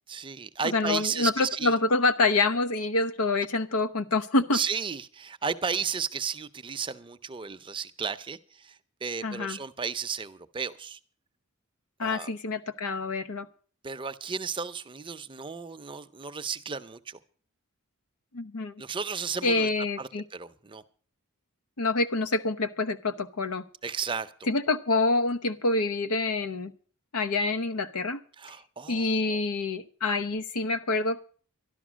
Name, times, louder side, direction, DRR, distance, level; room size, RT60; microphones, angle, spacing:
voice 1, 0.1-1.7 4.5-8.8 9.0-11.0 12.0-12.3 13.8-17.2 18.8-19.7 20.0-20.8 23.8-24.3 28.4-29.4, right 6 dB, 25° right, 10 dB, 0.6 m, -34 dB
voice 2, 0.6-4.6 9.2-9.6 12.0-13.5 18.3-18.8 19.4-20.2 21.8-23.6 24.5-26.7 27.1-28.2 28.9-31.2, left 3 dB, 90° left, 10 dB, 0.9 m, -27 dB
12.5 x 12.0 x 6.2 m, 0.43 s
head